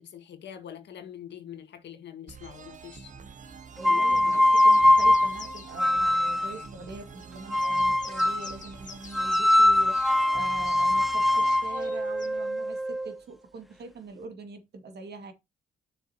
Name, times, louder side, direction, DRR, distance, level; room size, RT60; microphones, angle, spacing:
voice 1, 0.0-3.1 3.9-4.4, left 9 dB, 60° left, 1.8 m, -44 dB
sound 1, 2.3-12.9, right 6 dB, 40° right, 0.9 m, -47 dB
sound 2, 3.8-6.6 7.5-8.5 9.1-13.1, left 1 dB, ahead, 0.4 m, -22 dB
voice 2, 3.8-15.3, right 3 dB, 55° right, 2.1 m, -43 dB
sound 3, 4.1-5.8 6.6-6.7 7.2-9.7 9.9-10.2 10.6-10.9 11.7-12.3, left 6 dB, 40° left, 1.4 m, -48 dB
8.8 x 6.6 x 2.9 m
cardioid pair, 90°, 20 cm